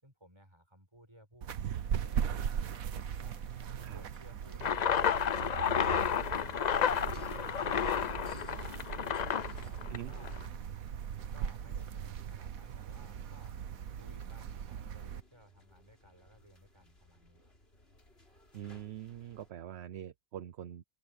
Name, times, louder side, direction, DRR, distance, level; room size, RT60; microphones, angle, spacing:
voice 1, 0.0-2.5 3.1-3.4 3.7-4.9 5.5-8.8 9.3-10.4 11.3-13.6 14.0-17.5, equal, 20° right, 6.9 m, -58 dB
sound 1, 1.4-15.2, right 8 dB, 75° right, 1.4 m, -39 dB
sound 2, 1.9-19.5, left 1 dB, 45° left, 4.8 m, -63 dB
sound 3, 4.6-10.5, left 8 dB, 85° left, 0.3 m, -31 dB
voice 2, 18.5-20.8, right 11 dB, 55° right, 0.9 m, -44 dB
omnidirectional pair, 1.5 m